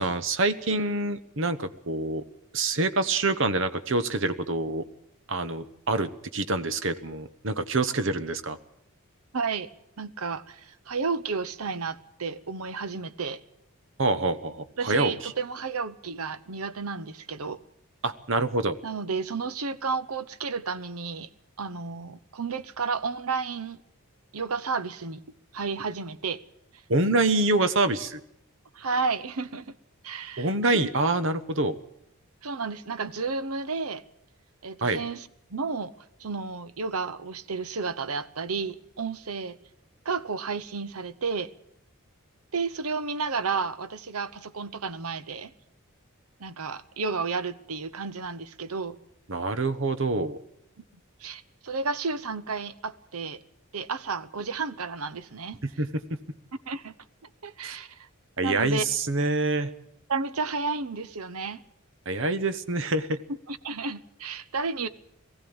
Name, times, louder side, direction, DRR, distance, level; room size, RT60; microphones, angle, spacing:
voice 1, 0.0-2.2 2.5-4.8 5.3-8.6 14.0-15.3 18.0-18.8 26.9-28.2 30.4-31.7 34.8-35.0 49.3-50.4 55.6-56.2 57.6-57.8 58.4-59.7 62.1-63.2, right 2 dB, 60° right, 1.1 m, -26 dB
voice 2, 9.3-9.7 10.0-13.4 14.8-17.6 18.8-21.3 21.6-23.8 24.3-25.2 25.5-26.4 28.7-29.7 30.0-30.9 32.4-34.0 34.6-35.9 36.2-39.6 40.0-41.5 42.5-45.5 46.4-49.0 51.2-53.4 53.7-55.6 56.7-56.9 57.4-58.1 58.4-58.8 60.1-61.6 63.5-64.9, right 4 dB, 80° right, 0.9 m, -32 dB
19.5 x 15.5 x 8.8 m
head